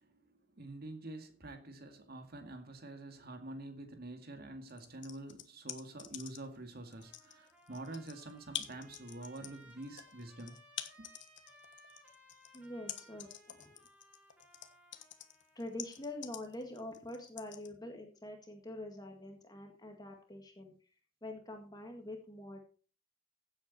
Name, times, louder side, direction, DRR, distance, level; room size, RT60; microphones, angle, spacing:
voice 1, 0.0-10.6 11.0-11.1, right 2 dB, 50° right, 2.2 m, -47 dB
sound 1, 4.7-6.6 6.9-17.7, left 11 dB, 60° left, 1.3 m, -46 dB
Trumpet, 6.9-16.1, equal, 5° right, 3.8 m, -62 dB
voice 2, 12.5-13.8 15.6-20.9 21.2-22.6, left 1 dB, 20° left, 1.9 m, -45 dB
15.5 x 8.2 x 4.3 m
head